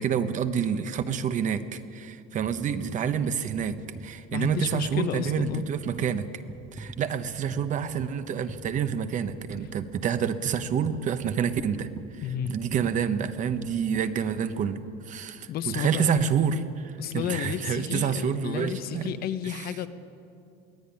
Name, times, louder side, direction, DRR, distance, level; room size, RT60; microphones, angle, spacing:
voice 1, 0.0-6.3 6.7-12.2 12.5-19.1 19.4-19.7, right 7 dB, 35° right, 10 dB, 1.0 m, -28 dB
sound 1, 2.4-14.8 15.4-15.5, right 2 dB, 10° right, 0.7 m, -44 dB
voice 2, 4.3-5.7 12.2-12.5 15.5-16.1 17.0-19.9, left 9 dB, 45° left, 10 dB, 1.1 m, -32 dB
22.5 x 16.5 x 9.9 m, 2.5 s
cardioid pair, 160°, 21 cm